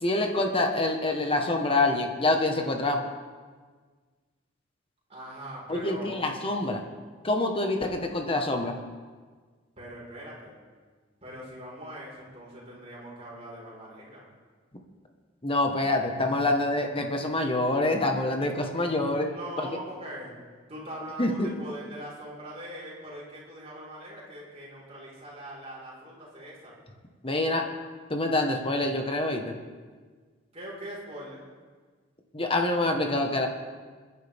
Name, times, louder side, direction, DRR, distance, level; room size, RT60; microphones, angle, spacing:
voice 1, 0.0-3.0 5.7-6.8 7.2-8.7 15.4-19.3 21.2-21.5 27.2-27.7 28.1-29.5 32.3-33.5, left 2 dB, 30° left, 3 dB, 1.6 m, -26 dB
voice 2, 5.1-6.2 9.8-10.6 11.2-14.2 19.2-20.3 20.7-26.7 30.5-31.4, equal, 35° right, -5 dB, 5.2 m, -41 dB
28.5 x 10.5 x 3.7 m, 1.5 s
head